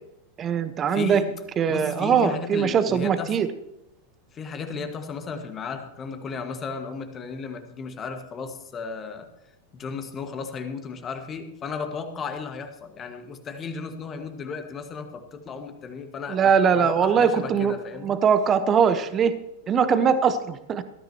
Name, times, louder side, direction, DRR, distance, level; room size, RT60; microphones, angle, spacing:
voice 1, 0.4-1.2 1.6-3.5 16.3-17.7 18.0-19.3 19.7-20.8, right 7 dB, 25° right, 11 dB, 1.2 m, -21 dB
voice 2, 0.9-1.4 1.7-3.4 4.3-9.3 9.7-18.2, left 5 dB, 25° left, 6 dB, 1.8 m, -35 dB
19.0 x 13.5 x 3.0 m, 0.88 s
figure-of-eight pair, 90°, 0 cm